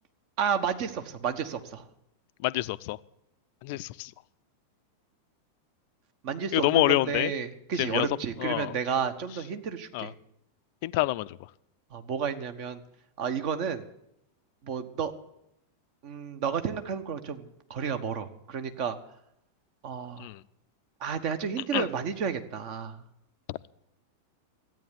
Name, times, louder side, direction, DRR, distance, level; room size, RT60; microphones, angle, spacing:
voice 1, 0.4-1.8 6.2-10.1 11.9-12.8 13.2-13.8 14.6-15.1 16.0-19.0 19.8-20.3 21.0-23.0, right 7 dB, 45° right, 8 dB, 1.4 m, -31 dB
voice 2, 2.4-3.0 3.6-4.1 6.5-7.3 7.8-8.1 8.4-8.7 9.9-10.1 10.8-11.4 20.2-20.4 21.7-21.9 23.5-23.6, left 18 dB, 50° left, 16 dB, 0.5 m, -27 dB
14.0 x 9.2 x 9.9 m, 0.80 s
figure-of-eight pair, 90°, 0 cm